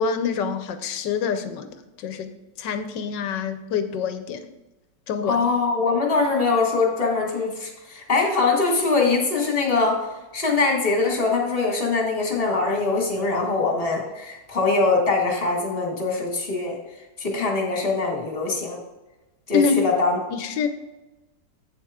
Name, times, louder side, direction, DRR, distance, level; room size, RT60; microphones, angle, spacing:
voice 1, 0.0-2.3 2.6-4.4 5.1-5.4 19.5-19.8 20.3-20.7, left 6 dB, 75° left, 9 dB, 1.3 m, -26 dB
voice 2, 5.2-10.0 10.3-16.8 17.2-18.8 19.5-20.2, left 3 dB, 30° left, 0 dB, 1.8 m, -22 dB
8.3 x 7.2 x 3.6 m, 1.1 s
omnidirectional pair, 2.0 m